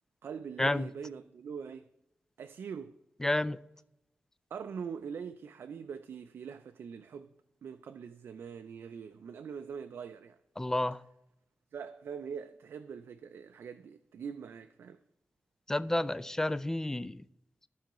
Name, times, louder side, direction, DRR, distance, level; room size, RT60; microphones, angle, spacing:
voice 1, 0.2-1.9 2.4-3.0 4.5-7.3 7.6-10.4 11.7-15.0, right 6 dB, 90° right, 0.4 m, -43 dB
voice 2, 3.2-3.6 10.6-11.0 15.7-17.2, left 1 dB, 15° left, 0.3 m, -30 dB
15.0 x 5.6 x 3.0 m
wide cardioid pair, 105°, 4 cm